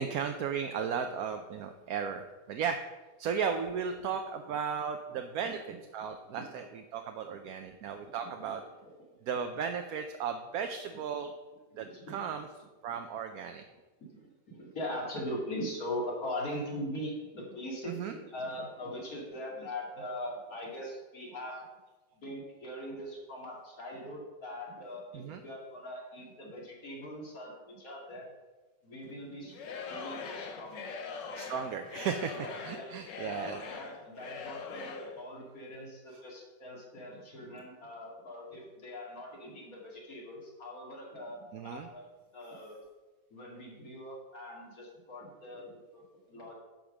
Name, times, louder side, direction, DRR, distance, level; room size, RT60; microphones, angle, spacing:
voice 1, 0.0-2.2 2.5-2.8 3.2-8.6 9.3-11.3 11.8-12.5 12.8-13.6 17.8-18.1 25.1-25.4 31.4-33.6 41.5-41.9, right 7 dB, 65° right, 6 dB, 1.0 m, -35 dB
voice 2, 11.7-12.3 14.1-21.7 22.2-28.3 28.8-29.6 29.9-30.9 32.3-42.1 42.3-42.8 43.3-46.0 46.3-46.5, left 1 dB, 55° left, -2 dB, 2.7 m, -41 dB
Singing / Crowd, 29.5-35.2, left 5 dB, 85° left, 1.7 m, -42 dB
10.5 x 5.2 x 6.3 m, 1.2 s
omnidirectional pair, 1.9 m